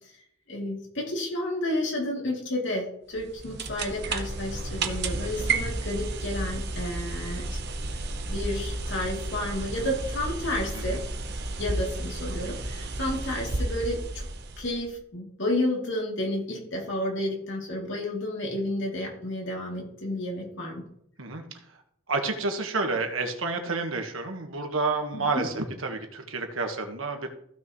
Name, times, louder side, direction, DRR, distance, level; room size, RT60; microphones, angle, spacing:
voice 1, 0.5-7.6 8.3-11.0 11.6-14.3 14.6-20.8 25.1-25.4, left 1 dB, 60° left, -2 dB, 3.0 m, -31 dB
sound 1, 3.1-14.9, right 2 dB, 55° right, 1.0 m, -32 dB
voice 2, 22.1-27.3, right 3 dB, 85° right, 4 dB, 1.5 m, -30 dB
15.5 x 6.2 x 3.1 m, 0.70 s
head